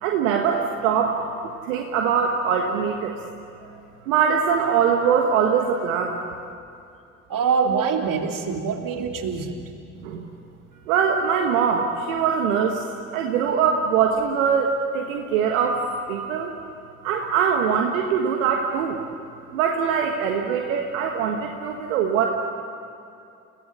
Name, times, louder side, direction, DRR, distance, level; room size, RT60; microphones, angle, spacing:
voice 1, 0.0-1.2 1.6-3.1 4.1-6.2 10.0-10.3 10.9-15.8 16.1-16.5 17.0-19.0 19.5-22.3, right 7 dB, 80° right, 2 dB, 1.5 m, -22 dB
voice 2, 7.3-9.5, right 6 dB, 55° right, 3 dB, 3.0 m, -24 dB
29.5 x 18.0 x 8.2 m, 2.6 s
figure-of-eight pair, 45°, 40 cm